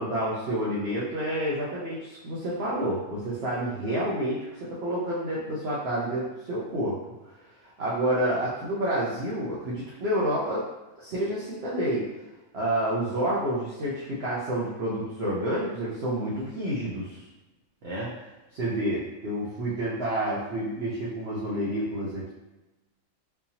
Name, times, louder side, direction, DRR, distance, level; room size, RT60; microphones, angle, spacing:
voice 1, 0.0-7.0 7.8-10.6 11.0-12.1 12.5-17.2 17.8-18.1 18.5-22.3, right 1 dB, 55° right, -7 dB, 0.8 m, -29 dB
3.7 x 2.8 x 2.8 m, 1.1 s
omnidirectional pair, 1.6 m